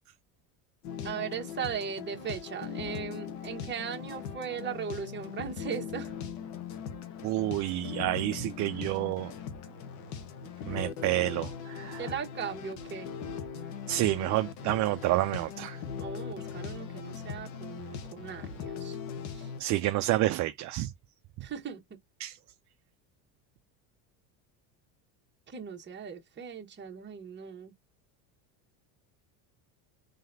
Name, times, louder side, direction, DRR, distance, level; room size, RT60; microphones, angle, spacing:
sound 1, 0.8-19.6, left 7 dB, 80° left, 1.4 m, -40 dB
voice 1, 1.0-6.1 10.4-10.5 12.0-13.1 15.9-19.0 19.3-19.5 21.4-21.8 25.5-27.7, right 7 dB, 25° right, 1.2 m, -38 dB
voice 2, 7.2-9.3 10.7-12.1 13.9-15.8 19.6-20.9 22.2-22.4, right 16 dB, 40° right, 0.5 m, -29 dB
3.9 x 3.3 x 2.6 m
cardioid pair, 130°, 44 cm